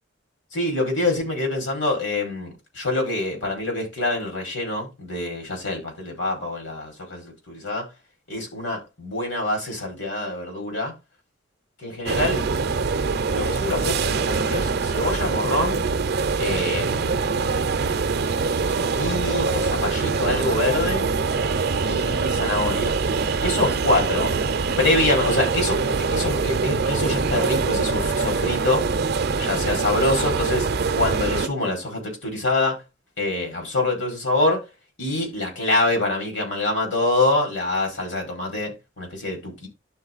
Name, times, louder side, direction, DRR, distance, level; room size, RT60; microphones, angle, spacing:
voice 1, 0.5-7.9 8.3-11.0 11.8-12.5 13.3-15.8 16.4-17.6 18.6-21.0 21.8-23.0 23.4-24.3 24.8-28.8 29.4-32.8 33.2-34.7 35.0-39.7, left 2 dB, 75° left, 5.2 m, -25 dB
sound 1, 12.1-31.5, right 4 dB, 60° right, 0.6 m, -24 dB
11.5 x 4.1 x 4.0 m
head